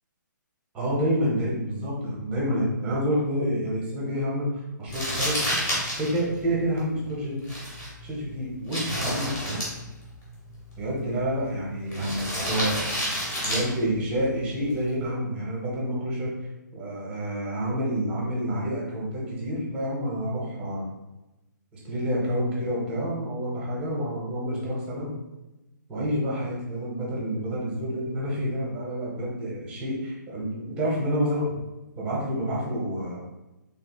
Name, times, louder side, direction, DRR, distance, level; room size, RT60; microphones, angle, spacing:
voice 1, 0.7-5.4 6.0-7.4 8.0-9.6 10.8-13.0 13.4-20.8 21.8-25.1 25.9-31.6 32.0-33.2, equal, 10° right, -4 dB, 0.6 m, -28 dB
Crumpling crinkling, 4.9-15.0, equal, 15° left, 0.9 m, -32 dB
3.2 x 3.1 x 2.2 m, 1.0 s
hypercardioid pair, 165°, 11 cm